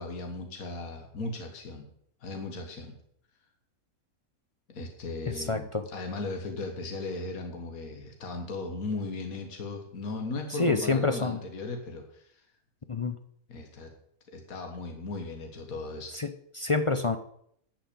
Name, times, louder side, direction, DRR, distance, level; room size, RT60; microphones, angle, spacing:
voice 1, 0.0-1.9 2.2-3.0 4.7-12.4 13.5-13.9 14.3-16.2, left 3 dB, 75° left, 4 dB, 2.0 m, -37 dB
voice 2, 5.3-5.9 10.5-11.4 12.9-13.2 16.1-17.2, left 3 dB, 40° left, 8 dB, 0.4 m, -28 dB
12.0 x 6.1 x 8.5 m, 0.69 s
omnidirectional pair, 1.5 m